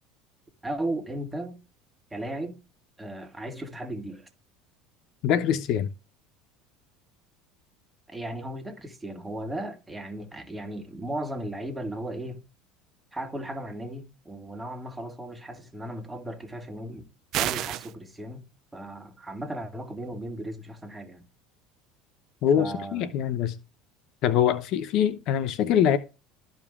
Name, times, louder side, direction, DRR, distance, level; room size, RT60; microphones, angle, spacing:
voice 1, 0.6-1.6 2.1-2.6 3.0-4.3 8.1-12.4 13.1-17.1 17.3-21.3 22.5-23.2, right 1 dB, 10° right, 1.7 m, -36 dB
voice 2, 5.2-5.9 22.4-23.6 24.2-26.0, left 9 dB, 60° left, 0.6 m, -23 dB
sound 1, 17.3-17.9, right 14 dB, 55° right, 0.4 m, -28 dB
13.0 x 5.1 x 2.4 m
hypercardioid pair, 80°, 0 cm